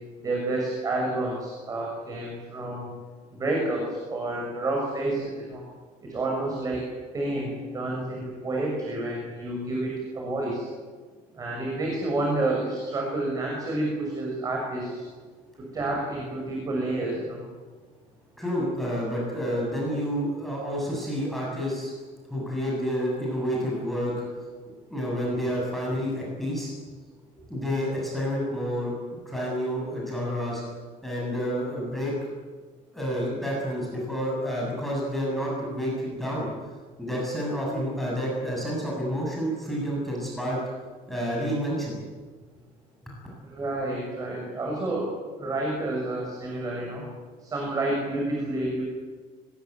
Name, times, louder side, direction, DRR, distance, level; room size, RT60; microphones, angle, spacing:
voice 1, 0.2-2.9 3.3-5.6 6.0-6.8 7.1-10.7 11.3-15.0 15.6-17.4 43.4-45.1 45.4-47.0 47.4-48.8, right 2 dB, 25° right, -1 dB, 6.6 m, -29 dB
voice 2, 18.4-21.9 22.3-24.1 24.9-26.7 27.5-28.9 29.3-30.6 31.0-32.1 32.9-36.5 37.0-40.6 41.1-42.0, equal, ahead, -4 dB, 7.2 m, -29 dB
25.0 x 20.5 x 9.4 m, 1.4 s
cardioid pair, 170°, 14 cm